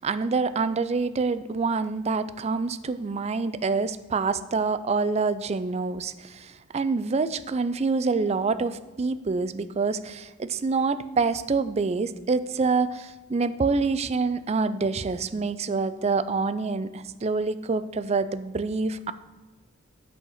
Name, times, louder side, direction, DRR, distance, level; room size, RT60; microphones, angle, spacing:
voice 1, 0.0-19.1, right 4 dB, 35° right, 13 dB, 0.4 m, -26 dB
8.2 x 6.3 x 5.8 m, 1.2 s
head